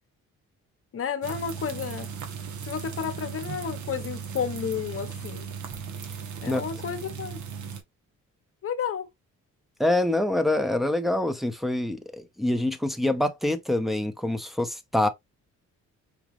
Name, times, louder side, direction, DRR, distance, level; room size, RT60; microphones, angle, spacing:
voice 1, 0.9-2.1 2.6-5.5 6.4-7.4 8.6-9.1, left 7 dB, 45° left, 0.9 m, -31 dB
sound 1, 1.2-7.8, right 6 dB, 70° right, 1.1 m, -37 dB
voice 2, 9.8-15.1, left 1 dB, ahead, 0.8 m, -25 dB
5.1 x 2.3 x 3.1 m
cardioid pair, 90°, 30 cm